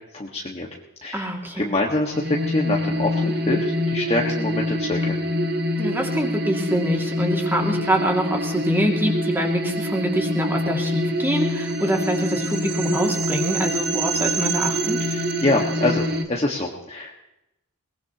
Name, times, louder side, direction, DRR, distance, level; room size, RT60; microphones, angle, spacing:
voice 1, 0.1-0.7 1.0-1.3 1.6-5.1 15.0-17.1, left 2 dB, 30° left, -2 dB, 1.6 m, -25 dB
voice 2, 1.1-1.6 5.8-15.0, right 1 dB, 10° right, 1 dB, 2.3 m, -25 dB
sound 1, 2.1-16.2, equal, 50° right, 1.4 m, -25 dB
22.0 x 20.0 x 3.0 m, 0.88 s
head